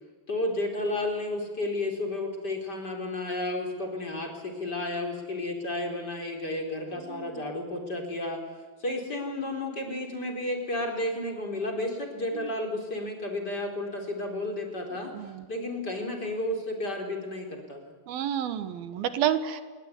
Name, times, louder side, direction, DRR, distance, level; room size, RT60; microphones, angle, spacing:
voice 1, 0.3-8.4 8.8-15.1 15.5-17.8, left 1 dB, 25° left, 3 dB, 4.6 m, -32 dB
voice 2, 7.1-7.4 12.3-12.5 15.1-15.4 18.1-19.6, right 10 dB, 85° right, 11 dB, 3.3 m, -30 dB
29.0 x 20.5 x 9.8 m, 1.4 s
omnidirectional pair, 4.2 m